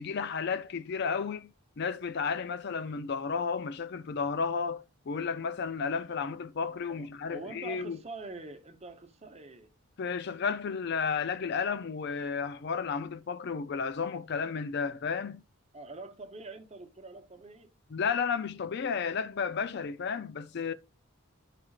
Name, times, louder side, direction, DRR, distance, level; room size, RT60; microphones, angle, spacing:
voice 1, 0.0-1.5 1.8-8.0 10.0-15.4 17.9-20.7, left 5 dB, 50° left, 0.4 m, -32 dB
voice 2, 6.9-9.7 15.7-17.7, right 3 dB, 30° right, 0.8 m, -45 dB
12.5 x 4.9 x 2.4 m
head